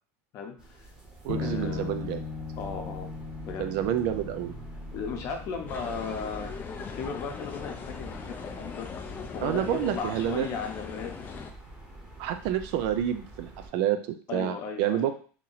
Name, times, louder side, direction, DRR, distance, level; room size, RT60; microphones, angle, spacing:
voice 1, 0.3-0.8 1.4-2.0 2.6-3.1 3.4-3.7 4.9-6.5 6.9-8.9 9.3-11.1 14.3-15.1, left 5 dB, 40° left, 3 dB, 0.8 m, -36 dB
sound 1, 0.6-13.7, right 2 dB, 10° right, 0.9 m, -46 dB
voice 2, 1.2-2.2 3.6-4.5 9.4-10.5 12.2-14.0 14.3-15.1, right 11 dB, 60° right, 8 dB, 0.4 m, -28 dB
sound 2, 1.3-10.8, left 5 dB, 90° left, 0.8 m, -41 dB
sound 3, 5.7-11.5, left 6 dB, 25° left, 0.4 m, -39 dB
3.0 x 2.7 x 3.9 m, 0.40 s
supercardioid pair, 150°, 8 cm